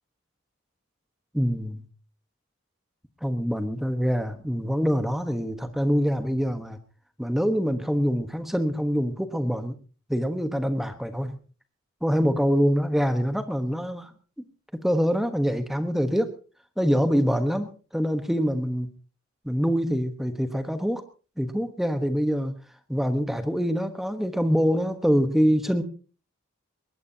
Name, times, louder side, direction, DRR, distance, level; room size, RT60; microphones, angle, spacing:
voice 1, 1.3-1.9 3.2-6.8 7.2-9.7 10.1-11.4 12.0-14.1 14.8-16.3 16.8-18.9 19.4-21.0 21.4-22.6 22.9-25.8, equal, ahead, 8 dB, 1.1 m, -25 dB
22.0 x 19.0 x 2.8 m, 0.36 s
head